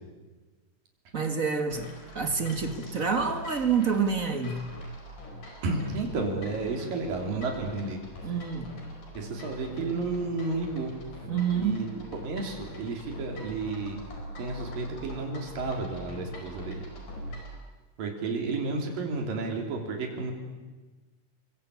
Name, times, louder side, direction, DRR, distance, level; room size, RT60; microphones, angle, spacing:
voice 1, 1.1-4.7 8.2-8.8 11.3-11.9, right 6 dB, 35° right, 7 dB, 1.4 m, -28 dB
sound 1, 1.7-17.6, equal, 80° left, 6.6 m, -42 dB
voice 2, 5.6-8.4 9.1-10.9 11.5-14.0 14.4-16.8 17.3-17.4 18.0-20.3, right 3 dB, 85° right, 2 dB, 5.0 m, -32 dB
29.0 x 23.5 x 8.5 m, 1.3 s
omnidirectional pair, 3.9 m